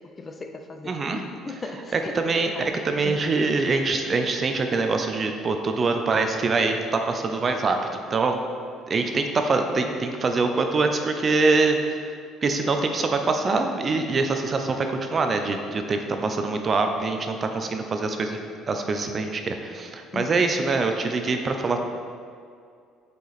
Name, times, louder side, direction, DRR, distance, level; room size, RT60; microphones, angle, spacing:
voice 1, 0.2-2.2 2.5-2.6 3.0-3.3 9.7-9.9 20.1-20.6, left 3 dB, 25° left, 5 dB, 0.4 m, -37 dB
voice 2, 0.8-1.2 1.9-8.4 8.9-11.8 12.0-12.2 12.4-21.8, right 3 dB, 30° right, 5 dB, 0.5 m, -24 dB
6.7 x 4.9 x 4.1 m, 2.3 s
cardioid pair, 130°, 0 cm